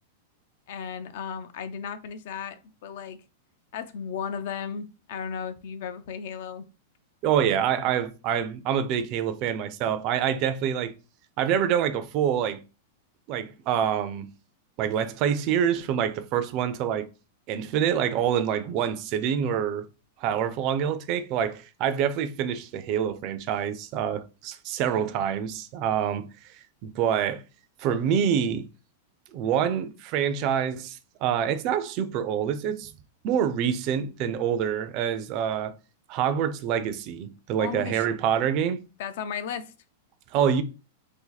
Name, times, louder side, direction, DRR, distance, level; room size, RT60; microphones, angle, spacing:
voice 1, 0.7-3.2 3.7-6.6 37.6-38.1 39.0-39.7, left 7 dB, 55° left, 0.5 m, -35 dB
voice 2, 7.2-10.9 11.4-12.6 13.3-14.3 14.8-17.1 17.5-19.9 20.2-26.3 26.8-27.4 27.8-28.7 29.3-32.9 33.2-35.7 36.1-38.8 40.3-40.6, right 8 dB, 35° right, 0.4 m, -26 dB
2.8 x 2.6 x 3.9 m
supercardioid pair, 165°, 0 cm